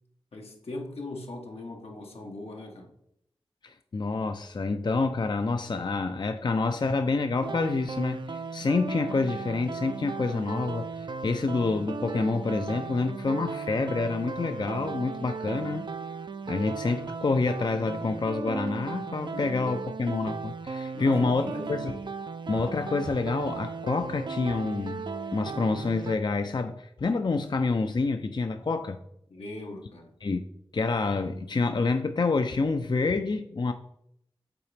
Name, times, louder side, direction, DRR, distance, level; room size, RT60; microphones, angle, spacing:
voice 1, 0.3-2.9 19.3-19.9 20.9-21.8 29.3-30.1, left 2 dB, 85° left, 1.1 m, -40 dB
voice 2, 3.6-15.9 16.5-22.0 22.5-29.0 30.2-30.4 30.7-33.7, left 3 dB, 50° left, 0.4 m, -28 dB
sound 1, 7.4-26.2, right 4 dB, 50° right, 0.4 m, -36 dB
8.4 x 4.0 x 3.3 m
cardioid pair, 40°, 10 cm